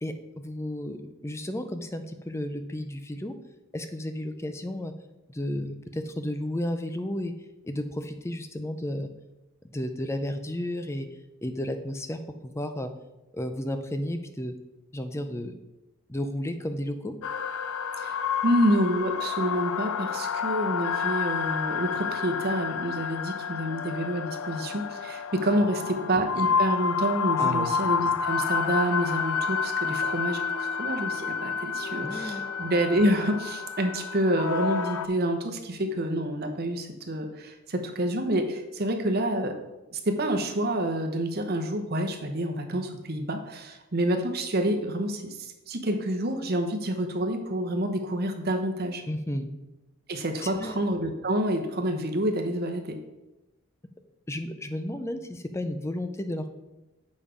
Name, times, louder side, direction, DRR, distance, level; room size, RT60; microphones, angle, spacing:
voice 1, 0.0-3.3 3.7-4.9 5.3-7.3 7.6-9.1 9.7-11.1 11.4-12.9 13.3-14.5 14.9-15.5 16.1-17.1 25.8-26.0 27.4-27.8 32.0-32.4 49.1-49.5 50.4-50.8 54.3-56.5, left 1 dB, 15° left, 8 dB, 0.5 m, -33 dB
sound 1, 17.2-35.1, left 6 dB, 85° left, 0.4 m, -29 dB
voice 2, 18.4-39.5 39.9-49.0 50.1-53.0, right 1 dB, 45° right, 5 dB, 0.9 m, -28 dB
6.9 x 5.3 x 5.1 m, 1.0 s
head